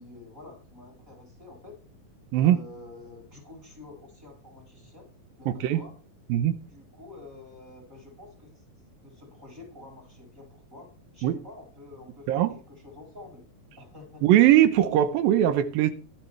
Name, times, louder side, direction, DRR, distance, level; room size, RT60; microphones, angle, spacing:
voice 1, 0.0-1.7 2.3-5.1 5.4-5.9 6.7-8.6 9.0-10.9 11.1-13.4 13.8-14.2, left 2 dB, 20° right, 6.7 m, -48 dB
voice 2, 5.5-5.8 6.3-6.5 11.2-11.3 12.3-12.5 14.2-15.9, right 12 dB, 80° right, 2.5 m, -20 dB
15.5 x 12.0 x 3.4 m
omnidirectional pair, 4.3 m